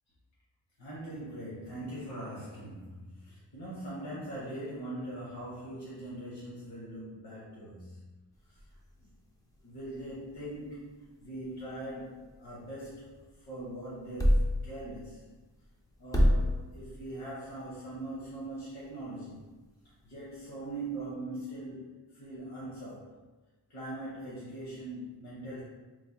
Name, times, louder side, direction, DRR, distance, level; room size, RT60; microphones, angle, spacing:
voice 1, 0.8-7.9 9.6-13.1 13.5-15.2 16.0-19.5 20.0-23.1 23.7-25.6, right 1 dB, 65° left, -7 dB, 1.0 m, -41 dB
sound 1, 8.3-21.1, equal, 10° left, 0.4 m, -34 dB
3.2 x 2.1 x 4.0 m, 1.2 s
wide cardioid pair, 175°, 43 cm